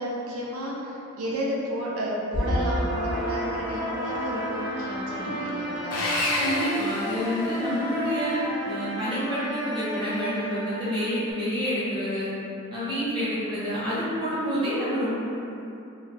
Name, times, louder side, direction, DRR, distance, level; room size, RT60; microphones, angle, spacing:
voice 1, 0.0-6.0 13.2-13.3, equal, 80° right, -5 dB, 0.5 m, -32 dB
sound 1, 2.3-11.3, equal, 25° left, 0.4 m, -31 dB
Sawing, 5.9-7.8, left 1 dB, 80° left, 0.4 m, -29 dB
voice 2, 6.4-12.3 12.7-15.1, equal, 20° right, -11 dB, 0.5 m, -28 dB
2.3 x 2.2 x 2.5 m, 2.8 s
head